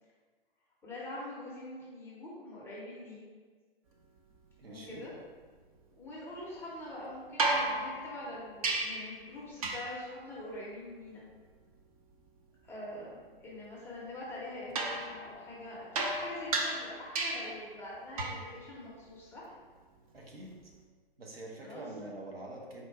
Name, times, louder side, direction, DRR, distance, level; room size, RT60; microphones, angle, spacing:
voice 1, 0.8-3.2 4.7-5.1 6.0-11.2 12.6-19.5 21.6-21.9, left 1 dB, 5° left, -7 dB, 0.6 m, -44 dB
voice 2, 4.6-5.0 20.1-20.7 21.2-22.9, right 2 dB, 75° right, -2 dB, 1.0 m, -45 dB
sound 1, 7.4-9.2 9.6-10.1 14.8-17.6 18.2-18.5 20.5-20.6, right 2 dB, 35° right, 0.6 m, -34 dB
4.3 x 2.5 x 4.3 m, 1.4 s
figure-of-eight pair, 120°, 30 cm